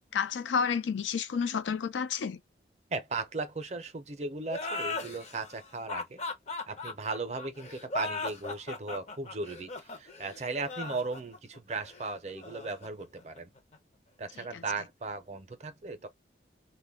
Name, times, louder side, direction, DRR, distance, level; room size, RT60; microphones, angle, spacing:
voice 1, 0.1-2.4 14.5-14.6, left 6 dB, 85° left, 0.4 m, -30 dB
voice 2, 2.9-6.2 6.7-13.5 14.2-16.1, right 3 dB, 40° right, 0.5 m, -37 dB
sound 1, 4.5-13.8, left 3 dB, 40° left, 0.6 m, -38 dB
2.2 x 2.1 x 3.4 m
head